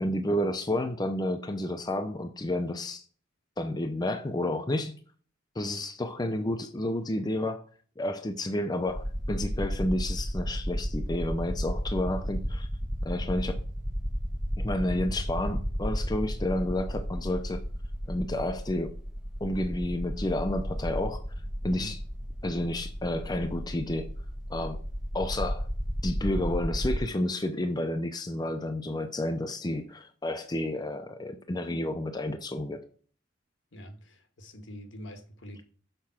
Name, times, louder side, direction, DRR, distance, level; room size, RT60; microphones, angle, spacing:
voice 1, 0.0-3.0 3.6-5.0 5.6-7.6 8.0-12.7 13.0-13.6 14.6-17.6 18.1-18.9 19.4-21.2 21.6-22.0 22.4-24.1 24.5-24.8 25.1-25.7 26.0-32.8, left 1 dB, 20° left, 0.6 m, -30 dB
sound 1, 8.9-27.0, equal, 5° right, 1.2 m, -33 dB
voice 2, 33.7-35.6, equal, 70° left, 1.4 m, -45 dB
6.8 x 4.7 x 5.8 m
head